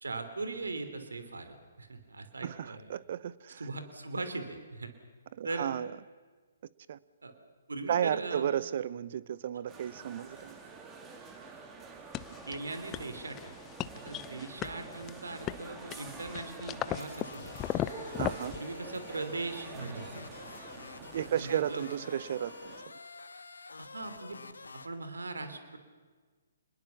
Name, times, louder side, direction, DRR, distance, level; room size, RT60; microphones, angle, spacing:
voice 1, 0.0-2.9 3.6-4.9 5.4-5.7 7.2-7.3 7.7-8.4 12.5-13.6 13.9-17.5 18.2-18.3 18.5-20.3 21.1-21.8 23.8-24.4 24.8-25.8, right 3 dB, 80° right, 9 dB, 3.3 m, -39 dB
voice 2, 2.4-3.6 5.3-5.9 6.9-7.0 7.9-10.6 14.4-14.5 18.1-18.6 21.1-22.7, right 10 dB, 50° right, 19 dB, 0.8 m, -33 dB
sound 1, 9.7-22.9, right 4 dB, 15° right, 3.0 m, -48 dB
sound 2, 12.1-18.6, left 12 dB, 20° left, 0.8 m, -38 dB
sound 3, 16.9-24.9, left 4 dB, 80° left, 1.5 m, -48 dB
28.0 x 20.5 x 7.1 m, 1.4 s
figure-of-eight pair, 135°, 0 cm